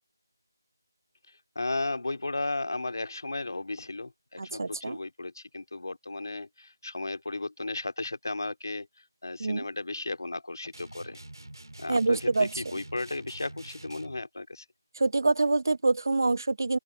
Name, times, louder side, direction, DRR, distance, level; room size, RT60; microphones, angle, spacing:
voice 1, 1.3-11.2 11.8-14.7, left 2 dB, 65° left, 2.5 m, -35 dB
voice 2, 4.4-5.0 9.4-9.6 11.9-12.5 15.0-16.8, right 3 dB, 60° right, 0.7 m, -25 dB
sound 1, 10.7-14.2, right 1 dB, 85° right, 2.3 m, -46 dB
open air
figure-of-eight pair, 165°, 2 cm